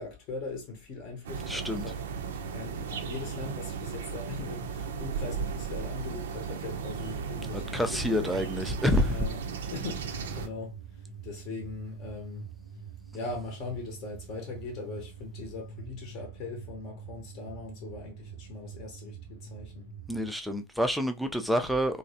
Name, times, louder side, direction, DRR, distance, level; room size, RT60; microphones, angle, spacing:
voice 1, 0.0-2.0 2.5-8.5 9.0-9.4 9.7-12.5 13.1-19.9, left 4 dB, 35° left, 0.8 m, -40 dB
sound 1, 1.2-10.5, right 6 dB, 60° right, 0.4 m, -36 dB
voice 2, 1.5-1.8 7.5-9.2 20.1-22.0, equal, ahead, 0.4 m, -28 dB
sound 2, 9.8-20.3, right 7 dB, 85° left, 0.8 m, -46 dB
3.0 x 2.0 x 2.7 m
figure-of-eight pair, 90°, 0 cm